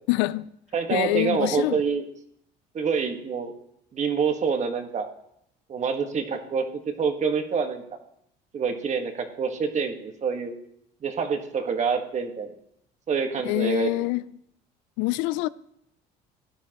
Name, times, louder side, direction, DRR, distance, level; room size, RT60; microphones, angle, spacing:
voice 1, 0.1-0.5 0.9-1.8 13.4-14.3 15.0-15.5, left 19 dB, 85° left, 0.4 m, -25 dB
voice 2, 0.7-2.0 2.7-3.5 3.9-5.1 5.7-6.6 7.0-8.0 8.5-10.5 11.0-12.5 13.1-13.9, right 5 dB, 40° right, 1.5 m, -26 dB
17.0 x 10.5 x 3.0 m
supercardioid pair, 100°, 18 cm